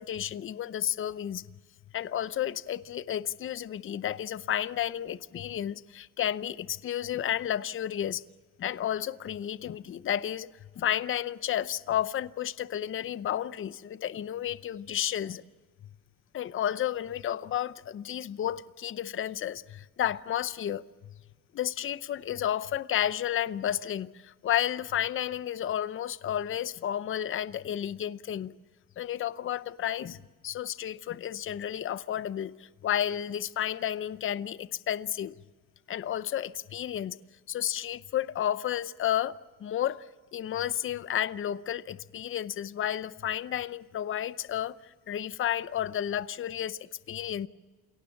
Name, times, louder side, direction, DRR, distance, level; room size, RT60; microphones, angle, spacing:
voice 1, 0.0-1.4 1.9-8.2 8.6-10.5 10.8-15.4 16.3-20.8 21.5-28.5 29.0-30.2 30.4-35.4 35.9-37.2 37.5-40.1 40.3-47.5, left 10 dB, 35° left, 0.7 m, -32 dB
29.0 x 17.5 x 7.1 m
cardioid pair, 125°, 36 cm